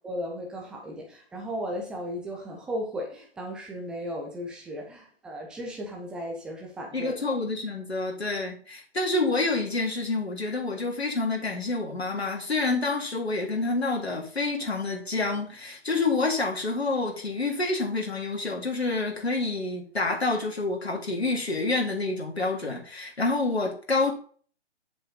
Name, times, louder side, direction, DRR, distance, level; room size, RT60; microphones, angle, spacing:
voice 1, 0.0-7.2, equal, 5° right, 0.8 m, -35 dB
voice 2, 6.9-24.1, left 3 dB, 70° left, 3.5 m, -28 dB
7.7 x 7.5 x 4.4 m
figure-of-eight pair, 140°, 32 cm